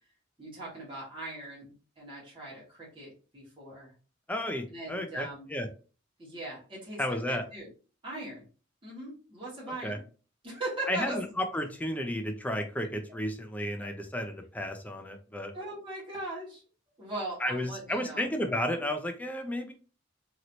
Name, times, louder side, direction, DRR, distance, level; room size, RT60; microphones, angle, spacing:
voice 1, 0.4-3.9 4.7-5.5 6.2-7.7 8.0-8.4 8.8-10.1 10.4-11.3 15.5-16.6 17.0-18.3, right 2 dB, 25° right, -6 dB, 1.5 m, -40 dB
voice 2, 4.3-5.7 7.0-7.4 9.8-10.0 10.9-15.5 17.4-19.7, left 1 dB, 10° left, 4 dB, 0.5 m, -32 dB
3.0 x 2.9 x 2.6 m, 0.36 s
head